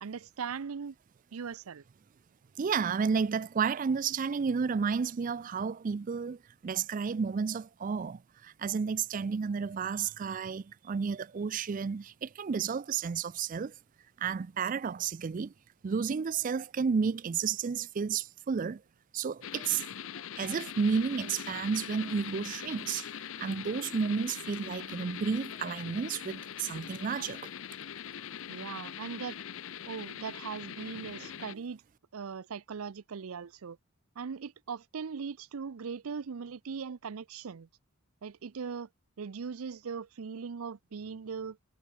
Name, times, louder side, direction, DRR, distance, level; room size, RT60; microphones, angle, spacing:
voice 1, 0.0-1.0 1.3-1.8 28.5-29.4 29.9-31.8 32.1-33.8 34.2-37.7 38.2-38.9 39.2-41.6, right 6 dB, 90° right, 0.5 m, -39 dB
voice 2, 2.6-13.7 14.2-15.5 15.8-18.8 19.1-19.8 20.4-27.5 31.2-31.3, right 6 dB, 40° right, 0.3 m, -32 dB
sound 1, 19.4-31.5, left 9 dB, 70° left, 0.6 m, -42 dB
head